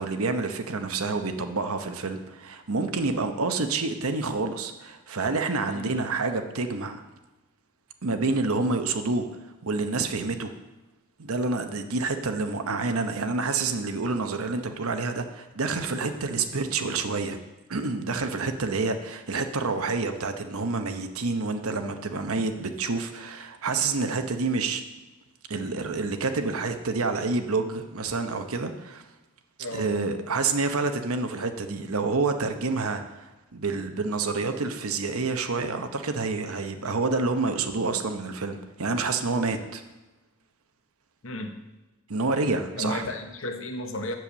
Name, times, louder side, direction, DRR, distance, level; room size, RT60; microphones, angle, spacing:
voice 1, 0.0-7.0 8.0-10.5 11.2-17.4 17.7-24.8 25.5-29.1 29.7-39.8 42.1-43.1, right 3 dB, 85° right, 7 dB, 0.9 m, -28 dB
voice 2, 29.6-29.9 41.2-41.6 42.7-44.1, left 2 dB, 65° left, 6 dB, 1.0 m, -33 dB
7.7 x 7.2 x 7.0 m, 1.1 s
head